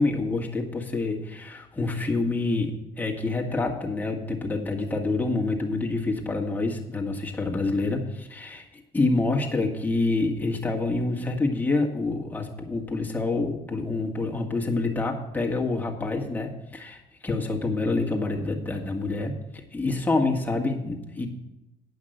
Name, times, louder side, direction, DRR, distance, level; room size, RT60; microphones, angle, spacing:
voice 1, 0.0-8.7 8.9-21.3, left 3 dB, 10° left, -1 dB, 1.7 m, -27 dB
10.5 x 5.8 x 7.9 m, 0.95 s
cardioid pair, 110°, 17 cm